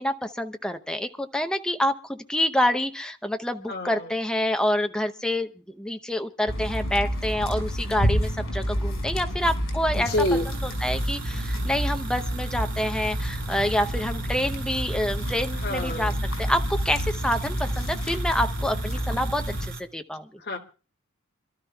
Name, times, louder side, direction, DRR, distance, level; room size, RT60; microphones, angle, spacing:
voice 1, 0.0-10.3 10.6-20.3, left 1 dB, 5° left, 6 dB, 0.8 m, -27 dB
voice 2, 3.7-4.0 10.1-10.4 15.6-16.1 20.5-20.6, left 1 dB, 50° left, 1 dB, 2.1 m, -27 dB
sound 1, 6.5-19.7, equal, 75° left, 5.3 m, -29 dB
sound 2, 10.0-19.8, right 3 dB, 60° right, 2.7 m, -38 dB
27.5 x 12.5 x 2.3 m, 0.36 s
head